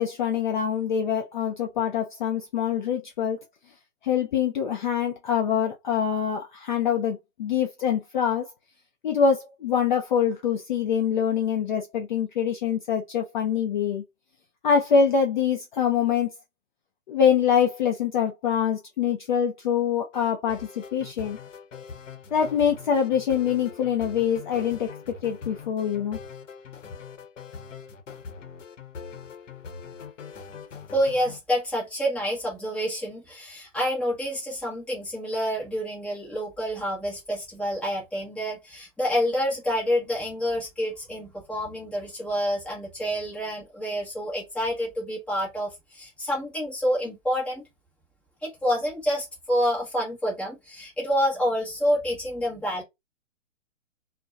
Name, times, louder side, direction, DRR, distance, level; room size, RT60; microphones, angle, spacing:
voice 1, 0.0-3.4 4.0-8.5 9.0-14.0 14.6-16.3 17.1-21.4 22.3-24.9 25.2-26.2, left 7 dB, 40° left, 0.4 m, -24 dB
sound 1, 20.1-31.4, left 6 dB, 75° left, 0.8 m, -42 dB
voice 2, 30.9-47.6 48.4-52.8, equal, 5° left, 0.8 m, -28 dB
2.6 x 2.1 x 2.3 m
hypercardioid pair, 135°, 38 cm